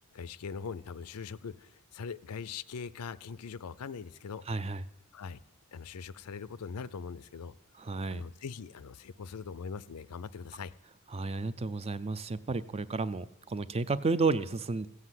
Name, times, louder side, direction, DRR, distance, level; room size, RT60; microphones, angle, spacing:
voice 1, 0.1-4.4 5.1-5.4 5.7-7.6 8.1-10.7, left 5 dB, 80° left, 0.5 m, -41 dB
voice 2, 4.5-4.8 7.8-8.2 11.1-14.9, right 3 dB, 25° right, 0.4 m, -32 dB
15.5 x 8.1 x 7.5 m
head